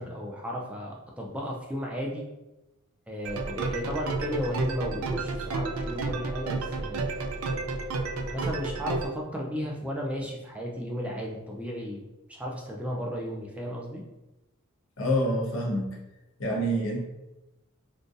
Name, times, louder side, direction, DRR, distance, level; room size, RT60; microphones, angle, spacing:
voice 1, 0.0-2.2 3.1-7.1 8.3-12.0 12.3-14.0, equal, 5° right, -2 dB, 0.3 m, -34 dB
sound 1, 3.3-9.1, right 3 dB, 90° right, 0.4 m, -31 dB
voice 2, 15.0-16.0 16.4-17.0, equal, 65° left, -1 dB, 0.8 m, -27 dB
3.7 x 2.5 x 2.5 m, 1.0 s
head